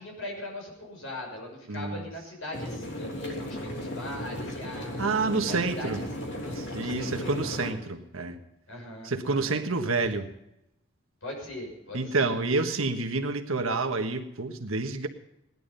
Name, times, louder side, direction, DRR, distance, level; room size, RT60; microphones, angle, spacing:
voice 1, 0.0-5.0 5.4-7.6 8.7-9.6 9.8-9.9 11.2-12.3, left 1 dB, 75° left, 0 dB, 6.1 m, -41 dB
voice 2, 1.7-2.0 5.0-6.0 6.5-8.4 9.0-10.3 11.9-15.1, right 3 dB, 85° right, 6 dB, 1.5 m, -28 dB
sound 1, 2.5-7.7, left 1 dB, 55° left, 3.3 m, -36 dB
18.0 x 11.0 x 5.4 m, 0.85 s
head